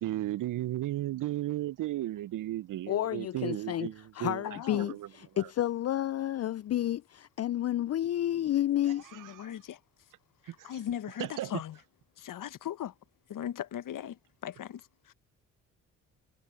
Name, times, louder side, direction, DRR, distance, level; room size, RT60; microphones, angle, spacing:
voice 1, 0.0-4.5 4.7-5.1 5.4-5.5 9.1-9.5 10.5-10.7 11.2-11.5, right 14 dB, 60° right, 0.7 m, -35 dB
voice 2, 2.9-9.3, left 12 dB, 45° left, 0.5 m, -31 dB
voice 3, 4.4-4.9 9.1-9.8 10.4-11.8 12.2-12.9 13.3-15.1, left 10 dB, 60° left, 1.5 m, -39 dB
hypercardioid pair, 45°, 36 cm